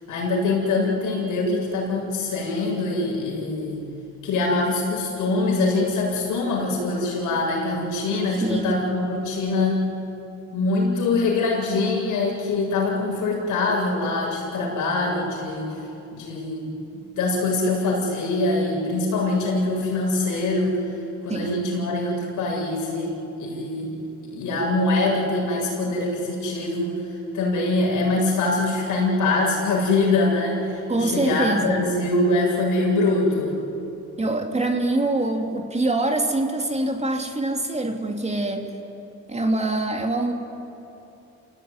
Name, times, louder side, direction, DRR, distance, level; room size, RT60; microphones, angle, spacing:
voice 1, 0.1-3.8 4.2-9.8 10.5-15.8 16.1-16.6 16.9-20.8 21.2-23.9 24.2-27.0 27.3-33.6, left 2 dB, 85° left, -2 dB, 7.7 m, -23 dB
voice 2, 8.4-8.9 21.3-21.6 30.9-31.8 34.2-38.7 39.3-40.3, right 2 dB, 20° right, 3 dB, 2.9 m, -24 dB
29.0 x 17.5 x 9.8 m, 2.8 s
cardioid pair, 90°, 30 cm